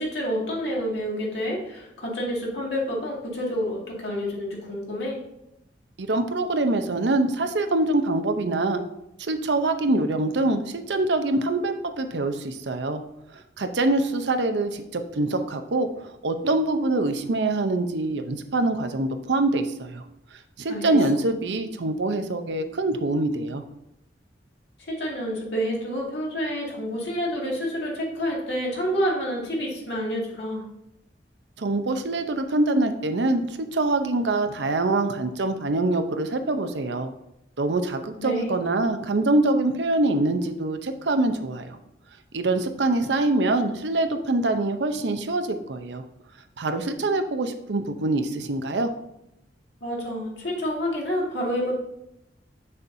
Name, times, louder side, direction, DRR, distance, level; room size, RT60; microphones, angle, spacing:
voice 1, 0.0-5.2 20.7-21.0 24.9-30.6 38.2-38.5 49.8-51.7, equal, 70° left, -3 dB, 2.1 m, -28 dB
voice 2, 6.0-8.8 9.2-13.0 13.3-20.0 20.6-23.6 31.6-37.1 37.6-41.8 42.3-46.0 46.6-48.9, right 2 dB, 75° right, 7 dB, 0.7 m, -24 dB
7.0 x 6.5 x 2.7 m, 0.83 s
head